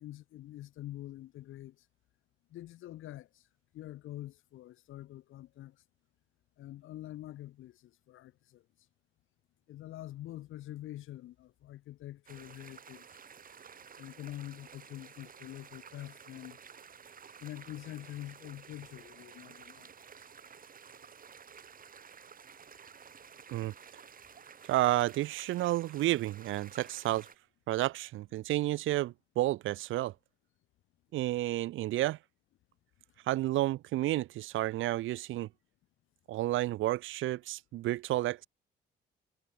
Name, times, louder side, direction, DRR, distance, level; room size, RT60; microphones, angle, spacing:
voice 1, 0.0-1.8 2.5-3.4 3.7-5.8 6.6-8.6 9.7-13.2 14.0-16.6 17.4-19.9, left 14 dB, 85° left, 7.4 m, -45 dB
sound 1, 12.3-27.4, right 7 dB, 45° right, 3.2 m, -53 dB
voice 2, 24.7-27.3 27.7-30.1 31.1-32.2 33.3-35.5 36.3-38.5, right 16 dB, 85° right, 0.8 m, -31 dB
cardioid pair, 90°, 20 cm